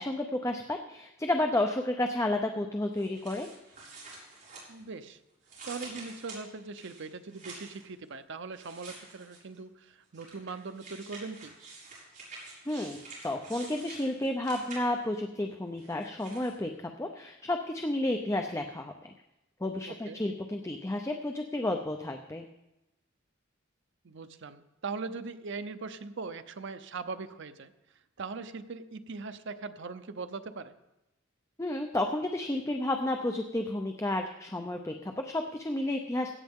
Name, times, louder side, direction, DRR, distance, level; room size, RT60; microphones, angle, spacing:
voice 1, 0.0-3.5 12.7-19.1 19.6-22.5 31.6-36.3, left 1 dB, 15° left, 4 dB, 0.6 m, -31 dB
sound 1, 3.0-5.1 5.4-7.8 8.5-9.6 10.1-15.1 15.8-16.5, right 3 dB, 40° right, 5.6 m, -48 dB
voice 2, 4.7-5.2 5.6-11.5 19.9-20.2 24.0-27.7 28.2-30.8, right 4 dB, 60° right, 10 dB, 0.7 m, -40 dB
17.0 x 10.5 x 3.7 m, 0.94 s
head